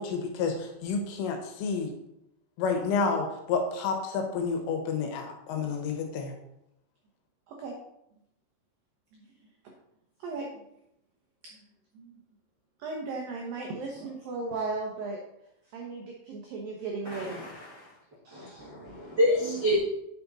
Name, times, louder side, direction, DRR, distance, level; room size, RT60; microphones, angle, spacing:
voice 1, 0.0-1.9 2.6-6.3, left 5 dB, 80° left, 3 dB, 3.8 m, -30 dB
voice 2, 10.2-10.6 11.9-12.2 12.8-15.2 15.7-17.4 18.2-18.7, right 3 dB, 85° right, -1 dB, 2.0 m, -36 dB
voice 3, 17.1-17.9 18.3-19.8, left 1 dB, 65° right, -8 dB, 1.0 m, -28 dB
9.2 x 6.0 x 4.1 m, 0.81 s
omnidirectional pair, 5.7 m